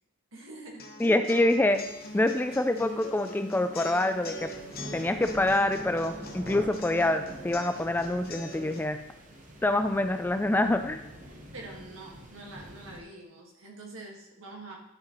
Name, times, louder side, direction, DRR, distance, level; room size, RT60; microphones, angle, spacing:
voice 1, 0.3-0.9 11.3-14.8, right 2 dB, 85° right, -1 dB, 1.7 m, -45 dB
sound 1, 0.8-8.8, left 1 dB, 50° left, 1.0 m, -42 dB
voice 2, 1.0-1.8 2.1-4.5 4.9-9.0 9.6-11.1, left 1 dB, 10° left, 8 dB, 0.3 m, -26 dB
sound 2, 1.7-13.0, right 1 dB, 40° right, 1.0 m, -46 dB
11.0 x 4.9 x 3.1 m, 0.82 s
head